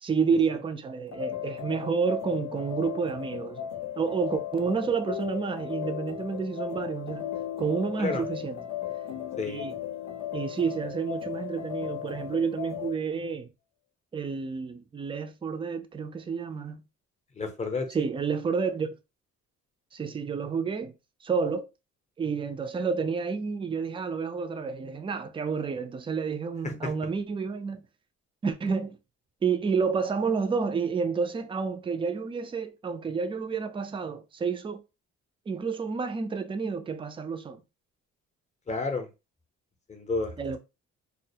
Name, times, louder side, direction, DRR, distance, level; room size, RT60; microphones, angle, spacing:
voice 1, 0.0-3.7 4.0-7.3 7.6-8.6 9.5-9.7 10.3-13.5 14.1-16.8 17.9-18.9 19.9-20.9 21.2-21.7 22.2-27.8 28.4-29.0 29.4-34.8 35.5-37.6 40.4-40.6, right 5 dB, 20° right, 0.3 m, -30 dB
sound 1, 1.1-13.0, left 10 dB, 65° left, 0.7 m, -36 dB
voice 2, 17.4-17.9 26.8-26.9 38.7-39.1 39.9-40.3, left 3 dB, 25° left, 0.6 m, -30 dB
2.2 x 2.0 x 2.7 m
cardioid pair, 90°, 30 cm